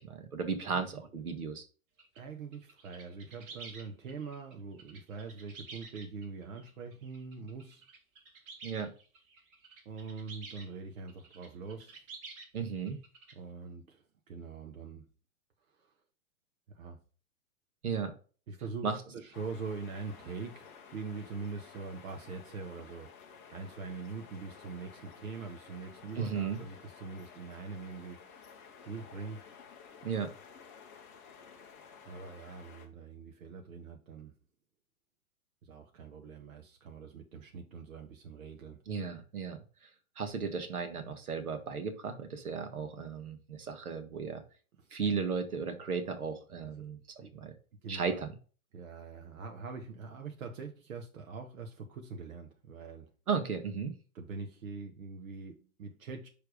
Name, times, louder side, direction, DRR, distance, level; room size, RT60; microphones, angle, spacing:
voice 1, 0.0-1.6 8.6-8.9 12.5-13.0 17.8-18.1 18.8-19.0 26.2-26.6 30.0-30.3 38.9-39.9 40.2-44.4 44.9-47.5 47.9-48.3 53.3-53.9, right 5 dB, 85° right, 1.4 m, -35 dB
sound 1, 2.0-2.2 2.5-10.7 11.1-12.5 12.7-13.3, right 4 dB, 40° right, 1.9 m, -51 dB
voice 2, 2.1-7.8 9.8-12.0 13.3-15.0 15.8-15.9 16.7-17.0 18.5-23.1 23.5-28.3 28.8-29.5 32.0-34.3 35.6-38.8 44.8-44.9 46.6-46.9 47.2-47.3 47.8-48.3 48.7-53.1 54.1-56.3, right 4 dB, 70° right, 1.1 m, -43 dB
sound 2, 19.3-32.9, left 6 dB, 15° left, 0.3 m, -53 dB
6.1 x 3.4 x 4.9 m
hypercardioid pair, 120°, 43 cm